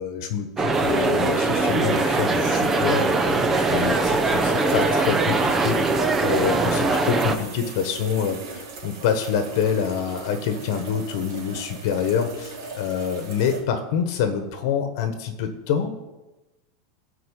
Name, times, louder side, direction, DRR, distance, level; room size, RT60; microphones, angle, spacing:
voice 1, 0.0-16.0, left 7 dB, 55° left, 7 dB, 1.3 m, -26 dB
sound 1, 0.6-7.4, right 3 dB, 15° right, 0.7 m, -21 dB
sound 2, 0.7-13.6, right 3 dB, 65° right, 2.9 m, -39 dB
14.0 x 4.7 x 8.4 m, 1.1 s
supercardioid pair, 160°, 2 cm